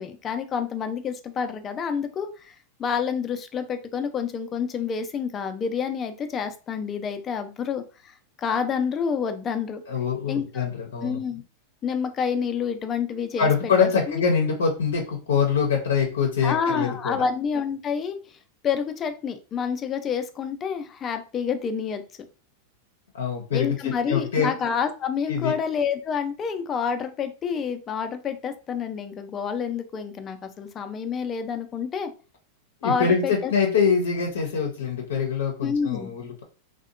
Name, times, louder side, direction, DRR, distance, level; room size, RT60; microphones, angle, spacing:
voice 1, 0.0-9.8 10.3-10.7 11.0-11.4 11.8-14.2 16.4-22.0 23.5-32.1 32.8-33.5 35.6-36.1, left 6 dB, 30° left, 8 dB, 0.4 m, -28 dB
voice 2, 9.9-11.2 13.4-17.2 23.1-24.5 25.3-25.5 32.8-36.4, left 6 dB, 85° left, 1 dB, 0.6 m, -24 dB
2.7 x 2.2 x 2.4 m, 0.34 s
hypercardioid pair, 105°, 0 cm